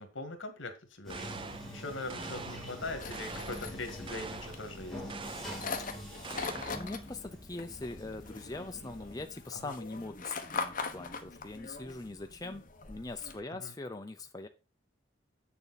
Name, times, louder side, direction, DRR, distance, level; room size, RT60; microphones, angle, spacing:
voice 1, 0.0-1.3 1.7-5.0 9.5-9.8 13.5-13.7, left 2 dB, 75° left, 7 dB, 1.9 m, -41 dB
Bathtub (filling or washing), 1.0-9.2, equal, ahead, 3.7 m, -45 dB
sound 1, 1.1-1.7 2.1-2.7 3.1-3.7 4.1-4.6 5.1-5.7 6.2-6.9, right 4 dB, 25° right, 0.6 m, -44 dB
sound 2, 2.8-13.4, left 4 dB, 45° left, 1.1 m, -42 dB
voice 2, 6.3-12.6 12.9-14.5, left 2 dB, 20° left, 6 dB, 0.6 m, -42 dB
8.4 x 7.0 x 4.1 m, 0.30 s
head